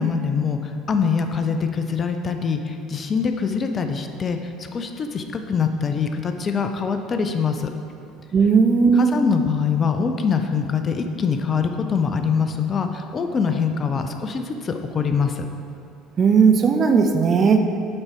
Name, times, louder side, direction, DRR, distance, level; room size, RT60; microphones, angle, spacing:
voice 1, 0.0-7.7 8.9-15.5, left 5 dB, 35° left, 6 dB, 0.5 m, -24 dB
voice 2, 8.3-9.1 16.2-17.6, right 5 dB, 40° right, 6 dB, 0.6 m, -16 dB
8.7 x 4.0 x 4.5 m, 2.4 s
figure-of-eight pair, 65°, 0 cm